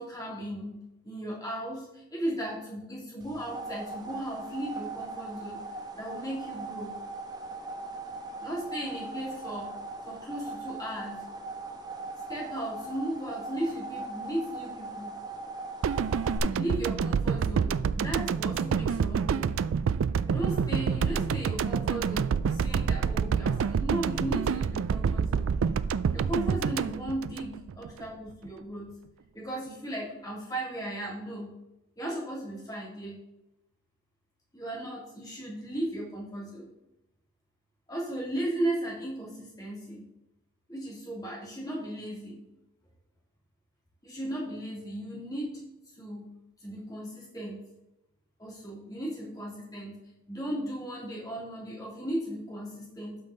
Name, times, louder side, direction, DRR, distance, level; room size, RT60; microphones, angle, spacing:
voice 1, 0.0-5.6 5.9-7.0 8.4-9.7 10.0-11.2 12.3-15.2 16.4-19.5 20.2-25.5 26.1-28.9 29.3-31.6 32.0-33.2 34.5-36.7 37.9-40.1 40.7-42.4 44.0-45.6 46.0-46.3 46.6-47.6 48.4-50.0 50.3-53.2, right 1 dB, 20° left, -5 dB, 2.7 m, -36 dB
sound 1, 3.2-16.4, right 3 dB, 20° right, 0.9 m, -40 dB
sound 2, 15.8-28.0 28.3-28.5, right 6 dB, 75° right, 0.3 m, -27 dB
12.5 x 5.5 x 3.9 m, 0.91 s
head